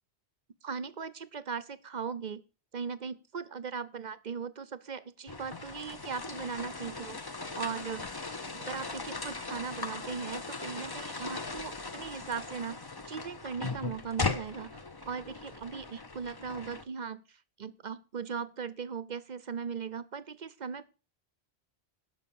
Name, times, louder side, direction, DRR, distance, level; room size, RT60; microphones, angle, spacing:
voice 1, 0.6-2.4 2.7-8.1 8.5-12.8 13.1-14.8 15.1-20.8, right 6 dB, 50° right, 15 dB, 0.7 m, -39 dB
sound 1, 5.3-16.8, left 3 dB, 25° left, 0.7 m, -39 dB
12.0 x 5.9 x 7.0 m, 0.34 s
omnidirectional pair, 1.1 m